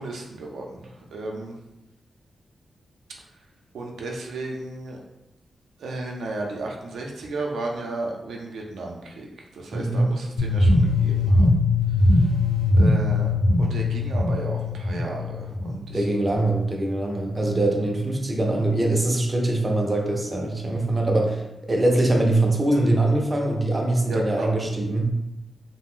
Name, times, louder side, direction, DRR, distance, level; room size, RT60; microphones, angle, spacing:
voice 1, 0.0-1.6 3.7-5.0 5.8-9.3 9.5-11.6 12.1-12.2 12.7-13.3 13.6-16.1 24.1-24.5, right 2 dB, 90° right, 0 dB, 0.4 m, -34 dB
voice 2, 9.7-10.1 15.9-25.1, right 2 dB, 20° right, 1 dB, 0.3 m, -23 dB
sound 1, 10.4-16.4, left 2 dB, 65° left, 0.6 m, -21 dB
2.4 x 2.0 x 3.5 m, 0.93 s
wide cardioid pair, 150°, 0 cm